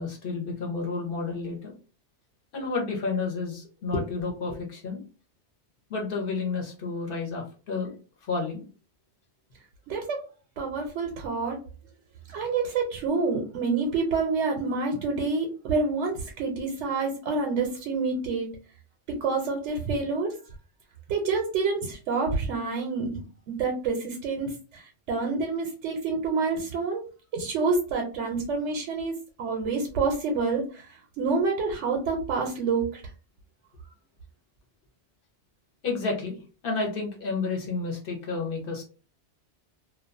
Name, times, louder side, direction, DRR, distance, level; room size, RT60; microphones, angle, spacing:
voice 1, 0.0-1.7 2.5-5.0 5.9-7.9 8.3-8.7 35.8-38.8, left 4 dB, 55° left, 1 dB, 0.9 m, -31 dB
voice 2, 9.9-10.2 10.6-11.6 12.3-18.5 19.1-20.4 21.1-27.0 27.3-33.0, right 4 dB, 85° right, 1 dB, 0.9 m, -28 dB
2.4 x 2.2 x 2.5 m, 0.36 s
omnidirectional pair, 1.2 m